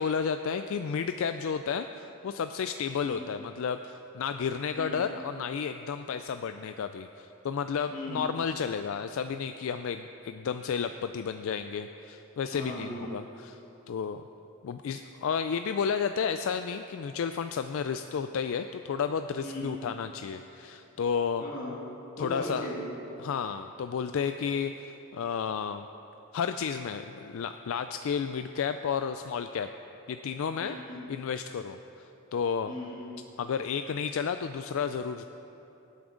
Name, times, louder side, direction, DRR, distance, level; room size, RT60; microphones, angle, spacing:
voice 1, 0.0-13.6 13.9-14.2 14.6-21.4 22.2-22.7 23.2-25.9 26.3-29.7 30.1-30.8 31.1-31.8 32.3-32.7 33.4-35.3, left 6 dB, 65° left, 9 dB, 0.3 m, -32 dB
voice 2, 7.9-8.3 12.5-13.1 19.4-19.7 21.4-21.8 22.2-22.9 30.6-31.1 32.7-33.1, left 1 dB, 35° left, -5 dB, 2.4 m, -38 dB
18.0 x 8.6 x 3.8 m, 3.0 s
head